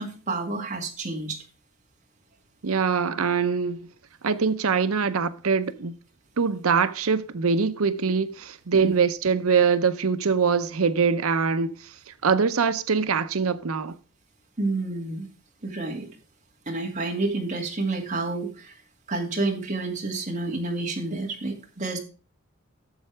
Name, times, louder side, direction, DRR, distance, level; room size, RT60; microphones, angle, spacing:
voice 1, 0.0-1.4 8.7-8.9 14.6-15.3 15.6-16.1 16.7-18.7 19.1-22.0, right 2 dB, 35° right, 2.0 m, -29 dB
voice 2, 2.6-3.9 4.2-5.9 6.4-13.9, right 5 dB, 80° right, 0.7 m, -23 dB
12.0 x 7.6 x 3.3 m
head